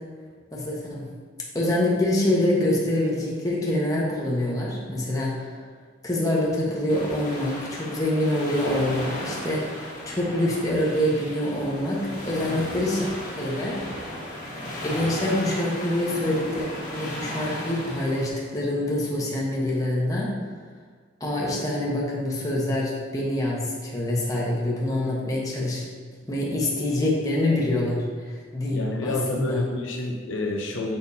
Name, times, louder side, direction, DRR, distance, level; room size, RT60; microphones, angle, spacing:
voice 1, 0.5-1.1 1.5-5.5 6.0-13.1 13.4-13.8 14.8-20.4 21.2-25.9 26.3-29.6, left 1 dB, 20° left, -4 dB, 1.1 m, -25 dB
sound 1, 6.9-18.3, left 1 dB, 40° left, 1.5 m, -35 dB
voice 2, 28.7-31.0, left 2 dB, 80° left, 0 dB, 0.8 m, -29 dB
6.8 x 5.6 x 2.8 m, 1.5 s
head